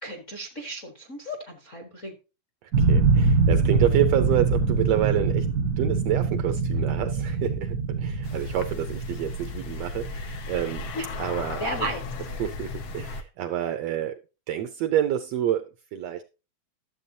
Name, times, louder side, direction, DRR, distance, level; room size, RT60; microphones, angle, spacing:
voice 1, 0.0-2.1 10.9-11.0 11.6-12.0, right 1 dB, 45° left, 1.0 m, -33 dB
voice 2, 2.6-5.5 5.8-10.9 11.2-11.6 12.4-14.2 14.5-16.2, right 11 dB, 75° right, 1.6 m, -28 dB
sound 1, 2.7-11.6, right 4 dB, 55° right, 1.0 m, -24 dB
sound 2, 8.2-13.2, left 4 dB, 75° left, 1.1 m, -36 dB
12.5 x 7.7 x 2.7 m
omnidirectional pair, 3.5 m